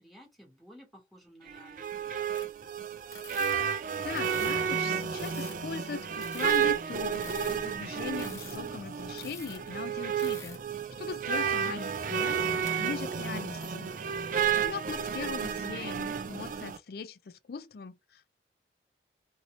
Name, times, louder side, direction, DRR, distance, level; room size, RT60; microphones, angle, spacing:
voice 1, 0.0-2.2 11.6-11.9, equal, ahead, 1.1 m, -53 dB
sound 1, 1.5-16.8, right 7 dB, 45° right, 0.3 m, -32 dB
sound 2, 2.3-2.6 3.1-4.7 5.1-9.7 10.2-10.7 11.0-11.2 12.2-12.7 13.0-13.8, left 4 dB, 15° left, 0.6 m, -48 dB
voice 2, 4.0-10.6 11.0-13.9 14.6-18.3, left 5 dB, 55° left, 0.4 m, -40 dB
sound 3, 6.9-16.7, right 2 dB, 70° right, 0.7 m, -50 dB
2.8 x 2.7 x 3.0 m
head